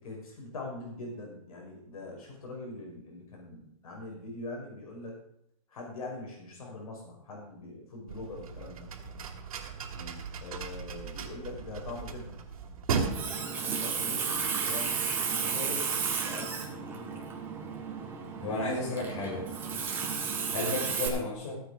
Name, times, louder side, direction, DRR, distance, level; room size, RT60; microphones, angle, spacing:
voice 1, 0.0-5.2 5.7-8.9 10.4-12.4 13.2-17.3 18.5-18.6 19.7-19.9, left 2 dB, 75° left, 0 dB, 5.9 m, -43 dB
sound 1, 8.1-13.1, right 6 dB, 70° right, 2.6 m, -36 dB
Water tap faucet, 12.9-21.1, right 6 dB, 10° right, 1.8 m, -33 dB
voice 2, 18.4-19.5 20.5-21.6, left 2 dB, 55° left, -3 dB, 5.2 m, -33 dB
15.0 x 8.7 x 5.1 m, 0.71 s
hypercardioid pair, 170°, 19 cm